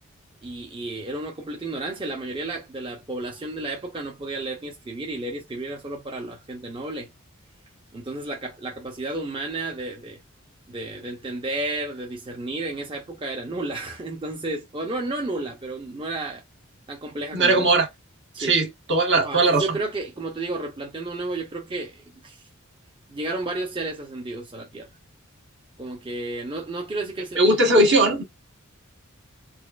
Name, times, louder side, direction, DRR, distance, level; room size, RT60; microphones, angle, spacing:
voice 1, 0.4-7.1 7.9-10.2 10.7-16.4 16.9-17.7 18.3-18.6 19.2-22.4 23.1-24.9 25.8-27.5, right 2 dB, 25° right, 0.6 m, -32 dB
voice 2, 17.3-17.9 18.4-19.8 27.4-28.2, right 2 dB, 55° right, 1.2 m, -19 dB
4.2 x 2.4 x 2.4 m
head